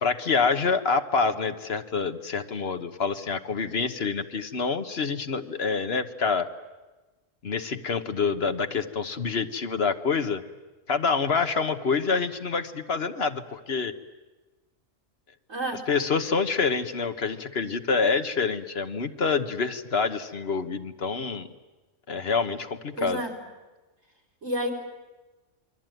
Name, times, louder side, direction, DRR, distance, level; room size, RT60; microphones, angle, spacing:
voice 1, 0.0-6.5 7.4-10.4 10.9-13.9 15.9-21.5 22.1-23.2, left 5 dB, 55° left, 9 dB, 1.4 m, -27 dB
voice 2, 15.5-15.8 23.0-23.3 24.4-24.7, right 1 dB, 85° right, 5 dB, 4.9 m, -29 dB
28.5 x 23.0 x 9.2 m, 1.2 s
omnidirectional pair, 1.3 m